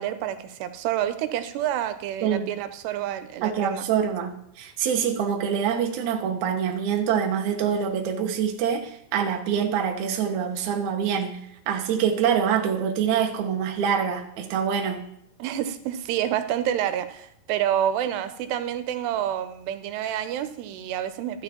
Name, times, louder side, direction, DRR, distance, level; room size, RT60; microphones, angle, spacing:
voice 1, 0.0-3.9 15.4-21.4, right 10 dB, 90° right, 10 dB, 2.8 m, -28 dB
voice 2, 3.4-11.4 11.7-15.0, right 8 dB, 75° right, 3 dB, 1.8 m, -25 dB
12.5 x 8.3 x 3.0 m, 0.73 s
omnidirectional pair, 4.7 m